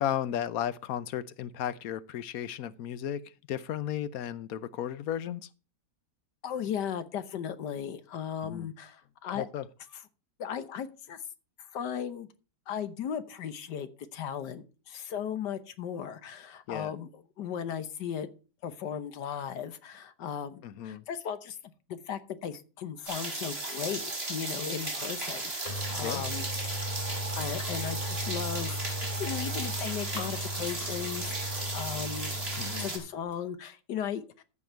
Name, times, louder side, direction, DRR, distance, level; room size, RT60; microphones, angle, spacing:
voice 1, 0.0-3.2 3.5-5.5 8.4-8.7 9.3-9.7 16.7-16.9 20.6-21.0 26.0-26.2 32.6-32.9, left 10 dB, 65° left, 1.1 m, -34 dB
voice 2, 6.4-9.5 9.9-10.0 10.4-11.2 11.7-12.3 12.7-18.3 18.6-21.6 21.9-26.5 27.1-32.3 32.8-34.4, left 8 dB, 85° left, 1.6 m, -36 dB
sound 1, 23.1-33.0, right 2 dB, 35° right, 3.5 m, -35 dB
sound 2, 25.2-25.3 25.6-32.9 33.3-33.4, equal, 25° left, 1.8 m, -37 dB
14.5 x 6.2 x 4.5 m
omnidirectional pair, 1.8 m